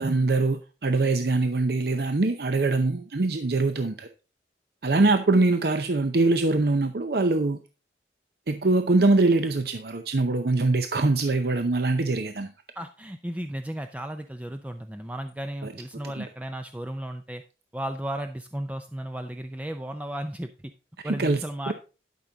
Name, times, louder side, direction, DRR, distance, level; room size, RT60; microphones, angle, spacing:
voice 1, 0.0-4.1 4.8-7.6 8.5-12.5 15.6-15.7 16.2-16.3 21.0-21.7, right 3 dB, 60° right, 8 dB, 0.7 m, -23 dB
voice 2, 12.8-17.4 17.7-20.7 21.0-21.7, right 1 dB, 10° right, 7 dB, 0.5 m, -34 dB
12.0 x 6.0 x 3.9 m, 0.33 s
head